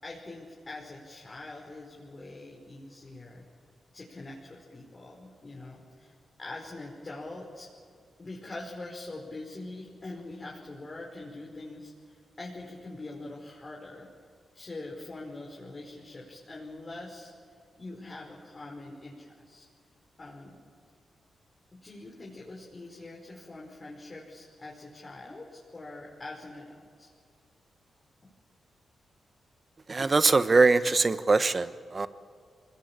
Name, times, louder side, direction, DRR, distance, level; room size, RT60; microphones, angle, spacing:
voice 1, 0.0-3.4 3.9-6.1 6.4-7.7 8.2-14.1 14.5-17.3 17.8-19.7 20.2-20.6 21.7-27.1, left 2 dB, 40° left, -3 dB, 5.2 m, -43 dB
voice 2, 29.9-32.1, right 3 dB, 40° right, 13 dB, 1.1 m, -22 dB
24.5 x 20.0 x 8.7 m, 2.1 s
supercardioid pair, 45°, 0 cm